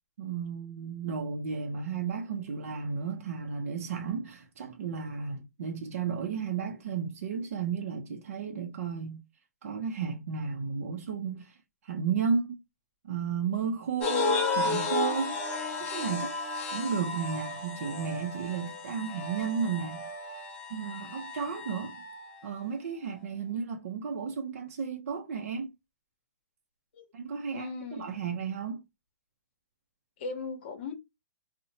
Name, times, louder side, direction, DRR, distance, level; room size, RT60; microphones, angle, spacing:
voice 1, 0.2-9.2 9.6-11.5 11.8-12.6 13.0-15.4 15.8-16.4 16.7-20.1 20.7-22.0 22.4-25.7 27.1-28.8, right 6 dB, 60° right, 0.5 m, -33 dB
sound 1, 14.0-22.4, left 3 dB, 15° left, 0.5 m, -33 dB
voice 2, 27.5-28.1 30.2-30.9, left 4 dB, 40° left, 0.8 m, -38 dB
2.7 x 2.0 x 2.7 m
hypercardioid pair, 160°, 9 cm